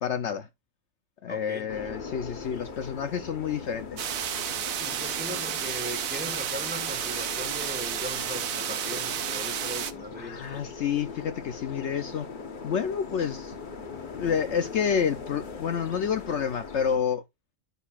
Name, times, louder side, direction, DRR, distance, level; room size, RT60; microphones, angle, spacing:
voice 1, 0.0-0.5 1.2-4.1 10.2-12.3 12.6-13.5 14.1-17.2, left 7 dB, 65° left, 0.9 m, -29 dB
voice 2, 1.3-1.7 4.8-10.7, left 1 dB, 10° right, 1.4 m, -39 dB
sound 1, 1.7-17.0, left 5 dB, 40° left, 1.1 m, -41 dB
sound 2, 4.0-9.9, right 9 dB, 90° right, 1.2 m, -31 dB
10.5 x 9.4 x 2.4 m
omnidirectional pair, 1.4 m